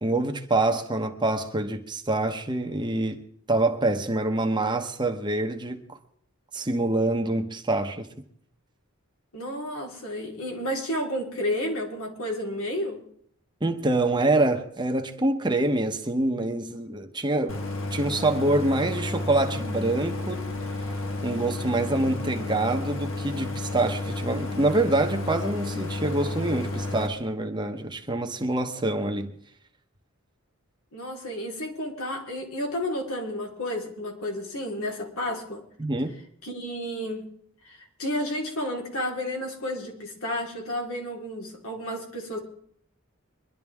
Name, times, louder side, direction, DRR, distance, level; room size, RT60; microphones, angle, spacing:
voice 1, 0.0-3.2 3.5-6.0 6.5-8.1 13.6-17.6 17.9-20.5 21.2-29.3 35.8-36.1, right 2 dB, 20° right, 1.1 m, -26 dB
voice 2, 9.3-13.0 30.9-35.7 36.4-37.2 37.6-42.4, left 1 dB, 85° left, 3.9 m, -31 dB
Idling, 17.5-27.1, left 2 dB, 65° left, 1.6 m, -32 dB
23.5 x 12.0 x 3.6 m
head